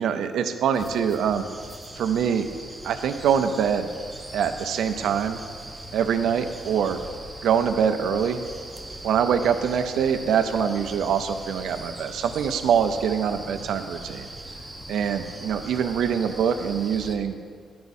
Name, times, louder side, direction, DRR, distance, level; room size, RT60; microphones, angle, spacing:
voice 1, 0.0-1.4 2.0-2.5 2.8-3.9 4.3-5.4 5.9-7.0 7.4-8.4 9.0-14.3 14.9-17.3, right 7 dB, 85° right, 7 dB, 0.5 m, -24 dB
sound 1, 0.7-17.2, right 1 dB, 5° right, 0.7 m, -40 dB
12.0 x 4.7 x 4.1 m, 2.1 s
wide cardioid pair, 170°, 0 cm